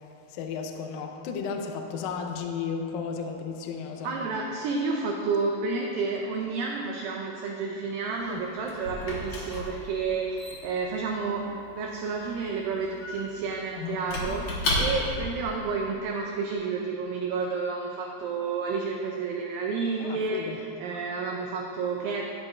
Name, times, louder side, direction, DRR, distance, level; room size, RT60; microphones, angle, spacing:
voice 1, 0.3-4.1 8.3-8.4 13.7-14.0 20.0-20.6, left 6 dB, 85° left, 4 dB, 2.0 m, -34 dB
voice 2, 4.0-22.3, right 4 dB, 85° right, 0 dB, 1.9 m, -30 dB
Squeak / Wood, 8.1-15.3, left 1 dB, 65° left, 1.8 m, -34 dB
11.0 x 7.8 x 2.4 m, 2.8 s
omnidirectional pair, 4.6 m